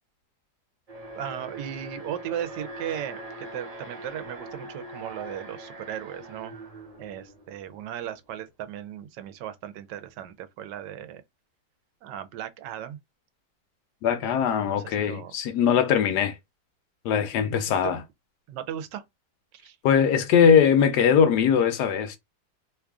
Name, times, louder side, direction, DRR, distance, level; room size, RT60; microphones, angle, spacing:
Alarm, 0.9-8.0, right 1 dB, 30° right, 0.8 m, -42 dB
voice 1, 1.1-6.6 7.0-11.2 12.0-13.0 14.7-15.3 17.7-17.9 18.5-19.0 19.5-19.8, right 10 dB, 80° right, 1.2 m, -36 dB
voice 2, 14.0-16.3 17.0-18.0 19.8-22.2, left 7 dB, 75° left, 1.2 m, -21 dB
3.1 x 2.3 x 3.5 m
omnidirectional pair, 1.9 m